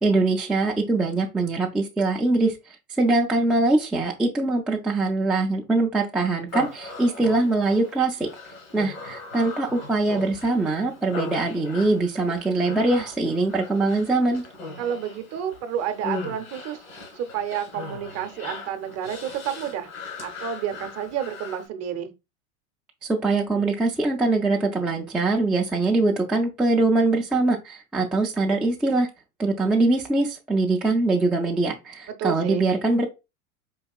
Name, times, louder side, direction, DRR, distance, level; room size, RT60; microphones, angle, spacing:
voice 1, 0.0-2.5 3.0-8.3 8.7-14.4 23.1-29.1 29.4-33.1, right 2 dB, ahead, 0.3 m, -22 dB
Human voice, 6.5-21.7, left 3 dB, 80° left, 1.9 m, -39 dB
voice 2, 14.8-16.8 17.1-19.9 20.2-22.1 32.2-32.7, right 9 dB, 40° right, 0.7 m, -30 dB
4.6 x 2.8 x 2.3 m
hypercardioid pair, 95°, 41 cm